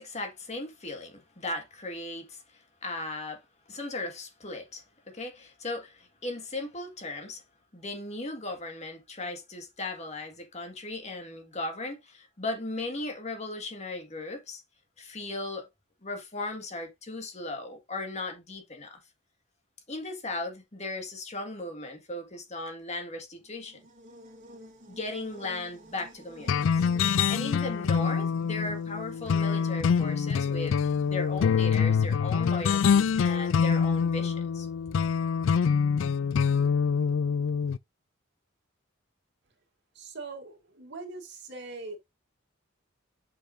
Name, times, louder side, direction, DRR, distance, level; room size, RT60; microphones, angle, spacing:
voice 1, 0.0-3.4 3.7-7.4 7.7-14.6 15.0-15.7 16.0-19.0 19.9-23.8 24.9-26.9 27.3-34.7, left 2 dB, 35° left, 1.8 m, -37 dB
Buzz, 23.4-31.5, equal, 40° right, 2.6 m, -52 dB
sound 1, 26.5-37.8, left 6 dB, 65° left, 0.3 m, -25 dB
voice 2, 39.9-42.0, right 3 dB, 55° right, 2.2 m, -41 dB
8.3 x 5.8 x 2.6 m
head